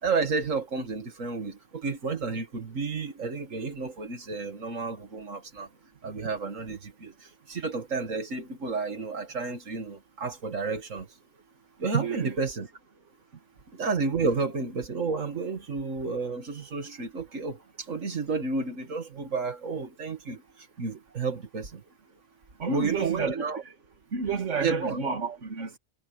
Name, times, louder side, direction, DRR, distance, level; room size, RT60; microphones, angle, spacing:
voice 1, 0.0-5.7 6.0-11.1 11.8-12.7 13.7-21.8 22.7-23.6 24.6-25.1, right 4 dB, 85° right, 2.3 m, -31 dB
voice 2, 11.9-12.3 22.6-23.5 24.1-25.8, right 4 dB, 70° right, 2.4 m, -30 dB
omnidirectional pair, 1.3 m